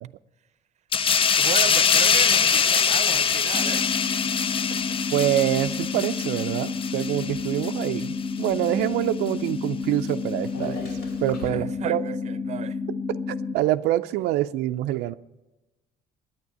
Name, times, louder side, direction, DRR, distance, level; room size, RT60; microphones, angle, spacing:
sound 1, 0.9-8.1 8.4-8.7, left 7 dB, 30° left, 0.5 m, -23 dB
Bicycle, 1.4-11.5, left 1 dB, 85° left, 5.1 m, -45 dB
voice 1, 1.4-3.9 4.2-5.0 11.5-12.8, right 9 dB, 40° right, 0.7 m, -35 dB
sound 2, 3.5-13.5, left 4 dB, 15° left, 0.8 m, -31 dB
voice 2, 5.1-10.9 11.2-12.0 13.1-15.1, right 14 dB, 85° right, 0.4 m, -25 dB
9.6 x 9.5 x 9.8 m
cardioid pair, 110°, 17 cm